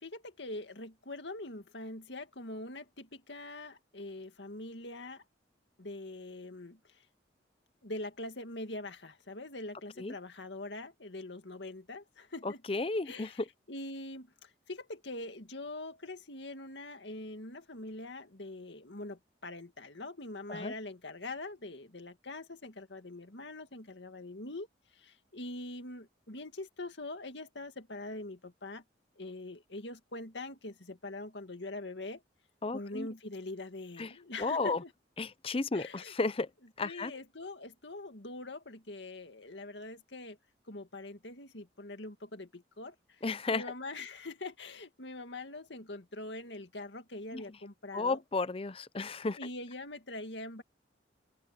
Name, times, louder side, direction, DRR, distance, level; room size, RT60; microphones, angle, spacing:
voice 1, 0.0-5.2 5.8-6.8 7.8-12.6 13.0-24.7 25.0-28.8 29.2-32.2 32.7-34.9 35.7-36.1 36.8-40.4 40.7-42.9 43.5-48.2 49.4-50.6, left 2 dB, 75° left, 2.1 m, -43 dB
voice 2, 12.7-13.3 20.5-20.7 32.6-33.1 34.0-34.1 34.4-34.8 35.2-36.5 36.8-37.1 43.2-43.6 47.3-47.4 47.9-49.4, left 3 dB, 30° left, 0.6 m, -33 dB
open air
head